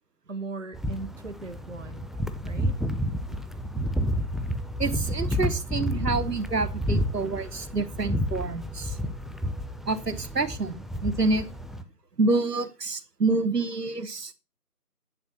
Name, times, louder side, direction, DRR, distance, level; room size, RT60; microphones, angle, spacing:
voice 1, 0.3-2.1 2.4-2.8, right 3 dB, 50° right, 0.8 m, -38 dB
sound 1, 0.7-11.8, equal, ahead, 0.5 m, -30 dB
voice 2, 4.8-9.0 9.9-11.5 12.2-14.3, right 3 dB, 80° right, 1.3 m, -27 dB
10.5 x 4.7 x 6.2 m
figure-of-eight pair, 175°, 47 cm